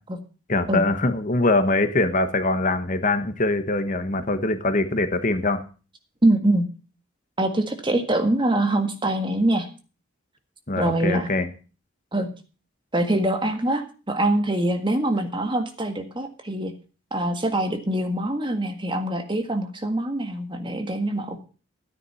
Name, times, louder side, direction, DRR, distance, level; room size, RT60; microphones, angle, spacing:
voice 1, 0.5-5.6 10.7-11.5, left 2 dB, 40° left, 9 dB, 1.2 m, -23 dB
voice 2, 6.2-6.7 7.4-9.7 10.8-11.3 12.1-12.3 12.9-16.7 17.1-21.5, right 1 dB, 25° right, 6 dB, 1.7 m, -24 dB
13.0 x 9.9 x 5.7 m, 0.36 s
head